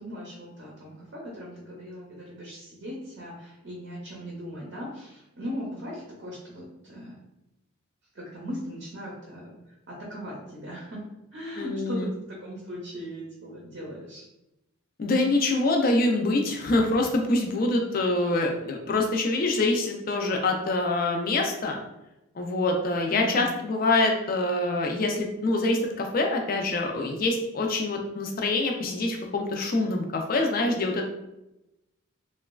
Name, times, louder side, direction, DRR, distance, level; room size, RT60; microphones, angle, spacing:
voice 1, 0.0-7.2 8.1-11.0 11.3-14.2 23.1-23.5, equal, 55° right, -3 dB, 0.6 m, -38 dB
voice 2, 11.6-12.1 15.0-21.8 22.4-31.1, left 2 dB, 45° left, 2 dB, 0.4 m, -25 dB
3.0 x 2.2 x 2.3 m, 0.91 s
head